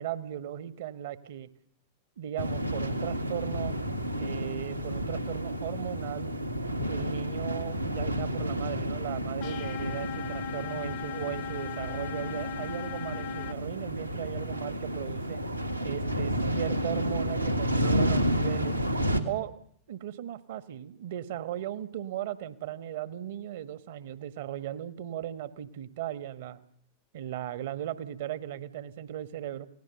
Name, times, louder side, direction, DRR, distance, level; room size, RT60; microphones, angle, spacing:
voice 1, 0.0-1.5 2.2-3.7 4.2-6.3 6.8-15.4 15.8-18.8 19.2-19.6 19.9-26.6 27.1-29.7, right 11 dB, 55° right, 13 dB, 1.3 m, -37 dB
sound 1, 2.4-19.2, equal, 90° right, 1.8 m, -31 dB
sound 2, 9.4-13.5, left 13 dB, 50° left, 0.9 m, -39 dB
29.0 x 18.0 x 7.0 m, 0.67 s
figure-of-eight pair, 90°, 0 cm